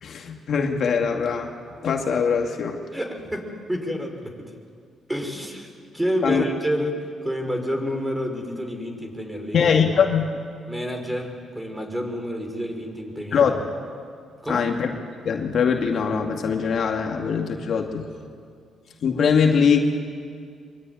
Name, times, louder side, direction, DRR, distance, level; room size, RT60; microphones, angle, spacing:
voice 1, 0.0-1.5 1.8-2.8 6.2-6.4 9.5-10.4 13.3-13.7 14.5-14.9 15.2-18.1 19.0-19.8, left 6 dB, 60° left, 2 dB, 2.5 m, -22 dB
voice 2, 2.9-4.5 5.1-9.6 10.7-13.5 14.4-14.7, equal, 10° right, 3 dB, 5.3 m, -29 dB
24.5 x 23.5 x 9.5 m, 2.1 s
cardioid pair, 90°, 0 cm